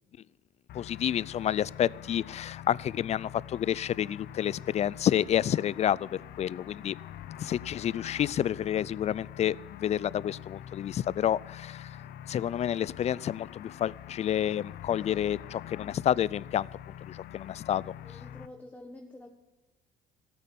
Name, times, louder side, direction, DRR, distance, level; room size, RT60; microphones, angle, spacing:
sound 1, 0.7-18.5, left 12 dB, 70° left, 0.8 m, -45 dB
voice 1, 0.7-7.0 7.4-12.0 12.3-16.7 17.0-17.9, left 10 dB, 40° left, 0.4 m, -29 dB
voice 2, 17.7-19.3, left 1 dB, 10° left, 1.3 m, -48 dB
13.5 x 8.8 x 7.6 m
cardioid pair, 110°, 17 cm